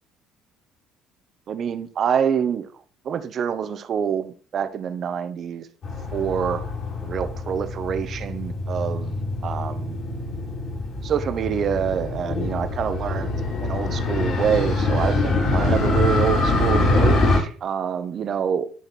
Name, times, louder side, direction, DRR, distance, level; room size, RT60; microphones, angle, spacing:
voice 1, 1.5-2.7 3.0-5.7 6.1-6.7 7.0-10.0 11.0-13.3 13.6-18.7, right 8 dB, 50° right, 1.4 m, -26 dB
Motorcycle, 5.8-17.4, left 2 dB, 50° left, 5.7 m, -24 dB
12.5 x 5.8 x 6.0 m
hypercardioid pair, 60°, 0 cm